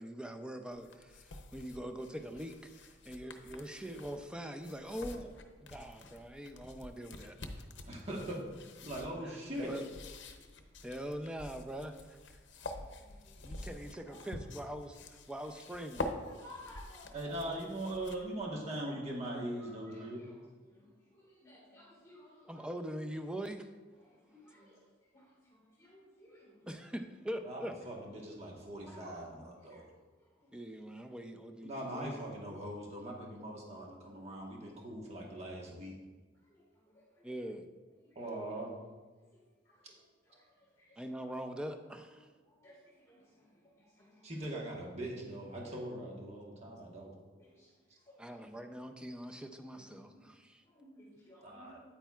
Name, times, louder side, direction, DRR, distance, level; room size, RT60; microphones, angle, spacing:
voice 1, 0.0-7.4 9.2-9.9 10.8-12.2 13.4-16.1 22.5-23.7 26.7-27.7 30.5-32.2 37.2-37.7 41.0-42.3 48.2-50.3, equal, 5° right, 5 dB, 0.4 m, -43 dB
sound 1, 0.7-18.4, left 2 dB, 70° left, 0.7 m, -47 dB
voice 2, 7.9-8.4 8.8-9.7 17.1-20.2 27.4-27.6 27.8-29.8 31.6-36.0 38.1-38.7 44.2-47.1 51.4-51.8, right 1 dB, 35° right, -2 dB, 1.2 m, -41 dB
voice 3, 10.4-10.8 12.6-13.7 14.1-14.3 16.3-17.2 18.8-18.9 19.6-22.7 24.0-26.7 28.9-29.2 29.7-29.8 30.2-30.6 36.4-37.3 38.0-38.4 39.2-41.0 42.4-44.4 46.8-47.0 47.4-48.6 50.6-51.7, left 1 dB, 15° left, -5 dB, 1.8 m, -59 dB
9.0 x 8.7 x 2.4 m, 1.3 s
head